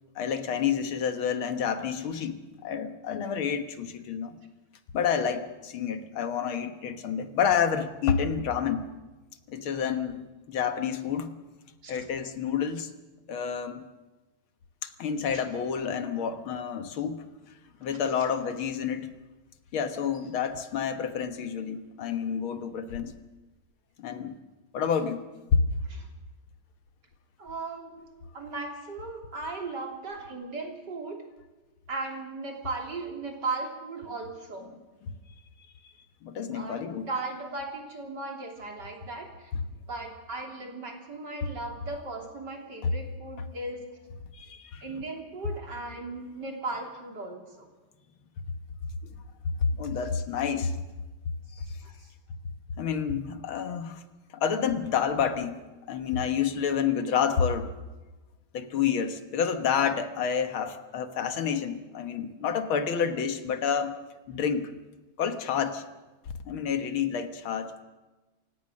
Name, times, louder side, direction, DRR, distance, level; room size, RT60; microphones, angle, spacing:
voice 1, 0.2-4.4 4.9-8.9 9.5-11.3 11.9-12.9 13.3-13.8 14.8-17.2 17.8-19.1 19.7-23.2 24.0-24.4 24.7-25.3 25.5-25.6 35.0-35.1 36.2-37.1 42.8-42.9 44.3-45.0 49.5-50.8 51.6-51.8 52.8-54.0 54.3-55.6 55.9-57.7 58.5-64.0 64.3-64.7 65.2-65.8 66.5-67.7, left 7 dB, 85° left, 8 dB, 2.2 m, -29 dB
voice 2, 27.4-31.2 31.9-34.7 36.5-39.3 39.9-43.8 44.8-47.7 51.8-51.9, right 3 dB, 55° right, 2 dB, 3.8 m, -37 dB
28.5 x 16.5 x 6.5 m, 1.2 s
omnidirectional pair, 2.2 m